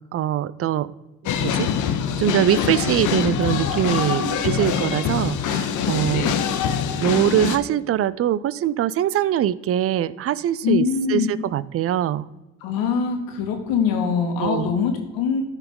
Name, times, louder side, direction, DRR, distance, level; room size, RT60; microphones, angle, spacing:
voice 1, 0.1-0.9 1.4-1.7 2.2-6.3 7.0-12.3 14.4-14.7, right 11 dB, 40° right, 19 dB, 0.4 m, -22 dB
sound 1, 1.3-7.6, left 8 dB, 60° left, 0.9 m, -24 dB
voice 2, 5.8-6.4 10.6-11.3 12.6-15.4, left 6 dB, 80° left, 4 dB, 1.7 m, -23 dB
13.0 x 4.8 x 3.7 m, 1.1 s
supercardioid pair, 75°, 35 cm